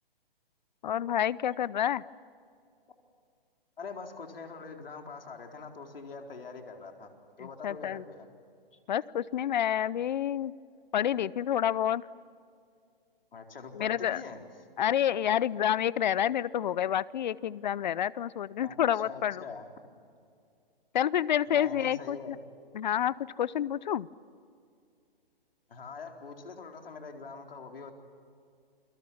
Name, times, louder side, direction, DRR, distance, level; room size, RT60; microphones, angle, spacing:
voice 1, 0.8-2.0 7.4-8.0 8.9-10.5 10.9-12.0 13.7-14.2 14.8-19.4 20.9-22.4 22.7-24.1, left 10 dB, 50° left, 21 dB, 0.7 m, -28 dB
voice 2, 3.8-7.1 7.4-8.3 13.3-14.4 18.6-19.7 21.5-22.5 25.7-27.9, left 4 dB, 75° left, 3 dB, 4.3 m, -44 dB
29.0 x 25.0 x 7.1 m, 2.4 s
hypercardioid pair, 145°, 29 cm